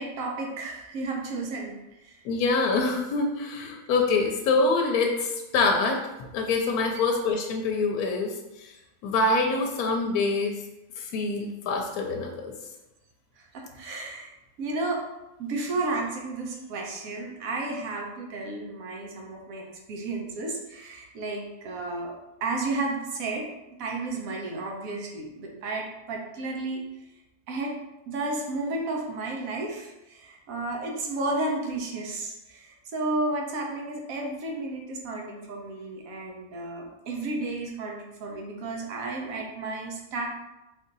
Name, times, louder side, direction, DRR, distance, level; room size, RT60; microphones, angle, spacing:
voice 1, 0.0-1.7 2.0-2.2 13.5-14.3 14.6-15.0 15.4-22.1 22.4-23.5 23.8-26.8 27.5-27.7 28.1-40.3, right 2 dB, 65° right, 0 dB, 1.1 m, -32 dB
voice 2, 2.2-6.1 6.3-8.7 9.0-10.5 11.0-12.5, left 3 dB, 75° left, 2 dB, 1.0 m, -25 dB
3.6 x 2.6 x 3.9 m, 0.97 s
omnidirectional pair, 1.6 m